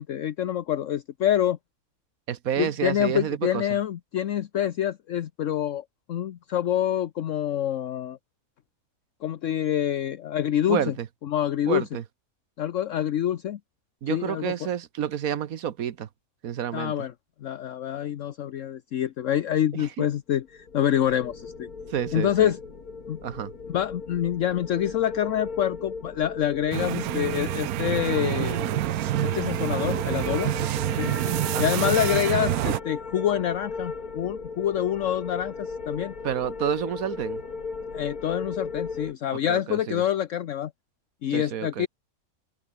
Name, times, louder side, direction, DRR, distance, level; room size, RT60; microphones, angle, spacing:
voice 1, 0.0-1.6 2.6-8.2 9.2-10.9 11.2-11.8 12.6-13.6 14.1-14.7 16.7-17.1 17.4-21.7 22.1-22.6 23.1-23.2 23.7-28.6 29.3-30.5 30.9-31.1 31.6-36.1 37.9-40.7 41.2-41.9, left 11 dB, 65° left, 1.1 m, -26 dB
voice 2, 2.3-3.7 10.7-11.1 11.7-12.0 14.0-16.1 16.4-16.9 19.7-19.9 21.9-22.5 23.2-23.5 31.5-31.9 36.2-37.4 39.5-40.0 41.3-41.9, right 9 dB, 75° right, 1.4 m, -29 dB
sound 1, 20.5-39.1, left 4 dB, 85° left, 3.1 m, -36 dB
sound 2, 26.7-32.8, right 15 dB, 90° right, 1.1 m, -27 dB
open air
omnidirectional pair, 1.5 m